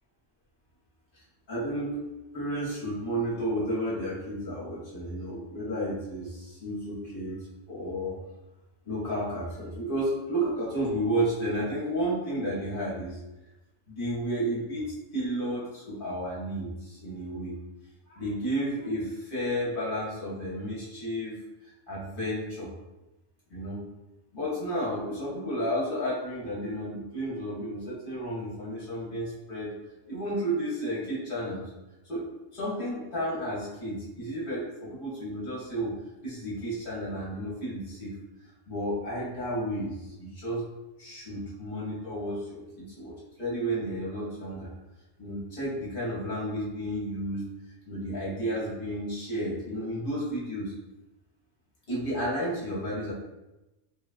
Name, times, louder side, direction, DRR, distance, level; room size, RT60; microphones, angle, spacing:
voice 1, 1.1-2.0 2.3-7.4 7.7-8.2 8.9-13.2 13.9-17.6 18.1-22.7 23.5-23.9 24.3-29.7 30.1-31.6 32.1-32.2 32.5-35.9 36.2-38.1 38.7-40.7 41.0-44.7 45.2-47.5 47.9-50.7 51.9-53.1, right 1 dB, 50° left, -7 dB, 1.0 m, -32 dB
3.2 x 2.2 x 2.4 m, 0.99 s
omnidirectional pair, 1.3 m